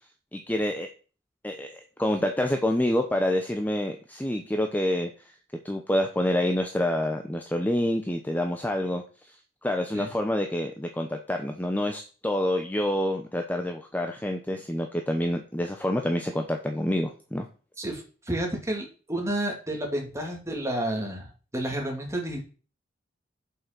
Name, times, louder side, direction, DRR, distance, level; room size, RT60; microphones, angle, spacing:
voice 1, 0.3-0.9 1.4-5.1 5.6-9.0 9.6-17.5, left 1 dB, 10° left, 4 dB, 0.7 m, -27 dB
voice 2, 17.8-21.3 21.5-22.4, right 1 dB, 15° right, 1 dB, 2.6 m, -30 dB
7.8 x 5.7 x 6.0 m, 0.37 s
head